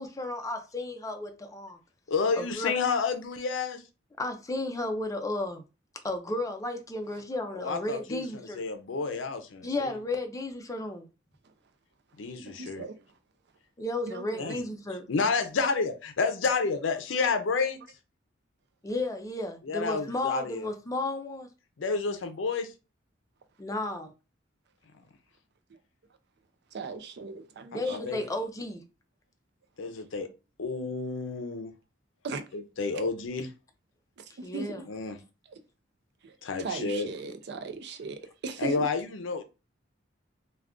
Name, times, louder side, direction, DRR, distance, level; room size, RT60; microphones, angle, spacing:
voice 1, 0.0-1.8 2.3-2.7 4.2-5.6 6.0-8.6 9.6-11.1 13.8-15.0 18.8-21.5 23.6-24.1 27.7-28.8 34.4-34.8, left 2 dB, 20° left, 0.5 m, -33 dB
voice 2, 2.1-3.8 7.5-10.0 12.2-12.8 14.4-14.6 15.1-17.8 19.6-20.7 21.8-22.7 27.9-28.2 29.8-30.3 30.6-31.7 32.5-33.5 34.9-35.2 36.4-37.1 38.6-39.4, left 4 dB, 75° left, 0.5 m, -30 dB
voice 3, 12.5-12.9 14.1-14.6 26.7-28.1 32.2-32.4 34.2-34.3 34.5-34.8 35.5-35.6 36.2-36.3 36.6-38.9, right 4 dB, 60° right, 0.4 m, -38 dB
2.4 x 2.3 x 3.5 m
head